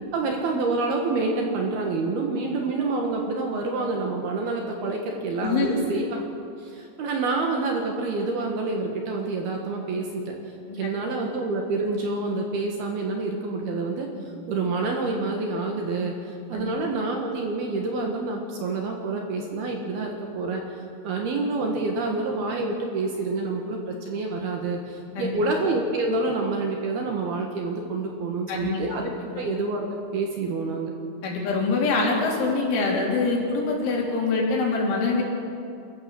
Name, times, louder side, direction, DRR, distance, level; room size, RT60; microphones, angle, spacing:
voice 1, 0.1-6.2 6.6-10.4 10.7-14.1 14.5-29.9 30.1-30.9, right 3 dB, 60° right, 1 dB, 3.1 m, -27 dB
voice 2, 5.4-5.9 10.7-10.9 16.5-16.7 25.2-25.4 28.5-28.8 31.2-35.2, left 3 dB, 70° left, -2 dB, 6.0 m, -24 dB
29.0 x 14.5 x 7.2 m, 2.5 s
omnidirectional pair, 5.8 m